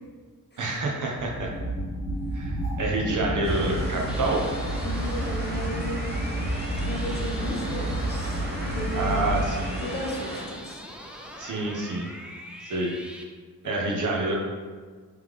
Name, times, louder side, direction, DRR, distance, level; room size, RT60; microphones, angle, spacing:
voice 1, 0.6-1.5 2.3-4.4 8.9-9.8 11.4-12.1 12.6-12.9 13.6-14.4, right 2 dB, 60° right, -1 dB, 0.9 m, -27 dB
sound 1, 1.1-10.2, right 1 dB, 85° right, 1.5 m, -30 dB
sound 2, 3.4-10.5, right 1 dB, 30° right, 1.0 m, -37 dB
sound 3, 4.1-13.2, equal, 5° right, 0.4 m, -42 dB
voice 2, 4.8-6.4 6.8-8.4 8.7-9.3 9.8-10.8 13.9-14.0, equal, 30° left, -2 dB, 0.8 m, -35 dB
3.7 x 3.3 x 3.2 m, 1.5 s
cardioid pair, 85°, 35 cm